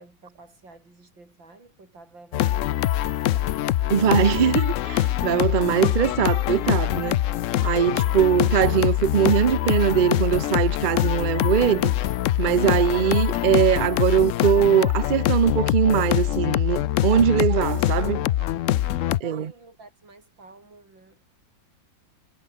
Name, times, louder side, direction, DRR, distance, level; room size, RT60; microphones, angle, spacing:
voice 1, 0.0-3.6 8.0-8.5 17.2-18.7 19.0-21.2, right 3 dB, 85° right, 6.6 m, -50 dB
sound 1, 2.3-19.2, left 13 dB, 85° left, 0.6 m, -24 dB
voice 2, 3.9-7.2 7.6-11.9 12.4-18.2 19.2-19.5, right 8 dB, 70° right, 0.4 m, -21 dB
omnidirectional pair, 2.0 m